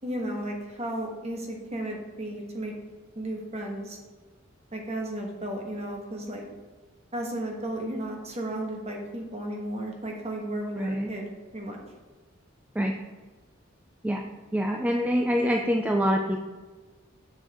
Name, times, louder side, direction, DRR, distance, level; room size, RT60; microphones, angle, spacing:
voice 1, 0.0-2.7 3.1-4.0 4.7-6.5 7.1-11.8, right 1 dB, 35° right, 1 dB, 1.4 m, -34 dB
voice 2, 10.8-11.1 12.8-12.9 14.0-14.2 14.5-16.5, equal, 5° right, 2 dB, 0.4 m, -25 dB
7.2 x 6.6 x 3.5 m, 1.4 s
head